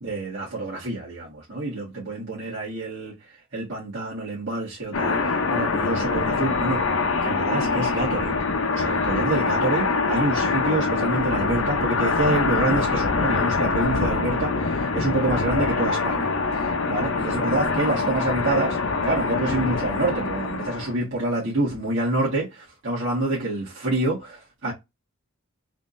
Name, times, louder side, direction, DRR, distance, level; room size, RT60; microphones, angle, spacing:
voice 1, 0.0-3.2 3.5-6.9 7.2-8.4 8.7-18.8 19.0-24.7, right 2 dB, 60° right, 1.7 m, -27 dB
sound 1, 4.9-20.9, left 4 dB, 65° left, 0.7 m, -24 dB
3.6 x 3.5 x 2.6 m
head